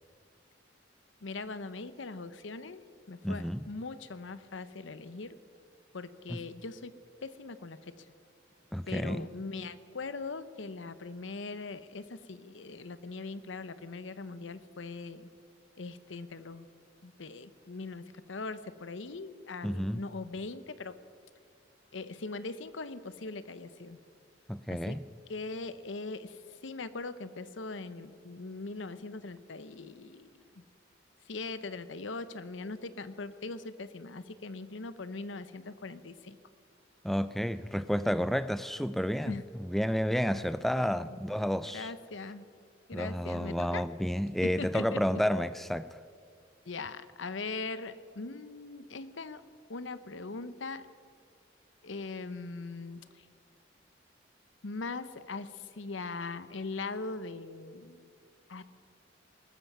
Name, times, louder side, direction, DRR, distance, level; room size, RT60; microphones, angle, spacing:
voice 1, 1.2-2.8 3.1-5.4 5.9-6.9 7.2-7.8 8.9-15.3 15.8-16.7 17.0-21.0 21.9-24.0 24.7-25.0 25.3-26.4 26.6-30.4 31.3-36.4 39.3-39.4 41.7-42.5 42.9-43.8 44.4-45.2 46.7-49.4 49.7-50.9 51.8-53.0 54.6-58.1 58.5-58.6, left 3 dB, 90° left, 0.8 m, -40 dB
voice 2, 3.2-3.7 6.3-6.4 8.7-9.3 19.6-20.0 24.5-25.0 37.0-41.9 42.9-46.0, equal, ahead, 0.3 m, -31 dB
19.5 x 13.5 x 5.5 m
head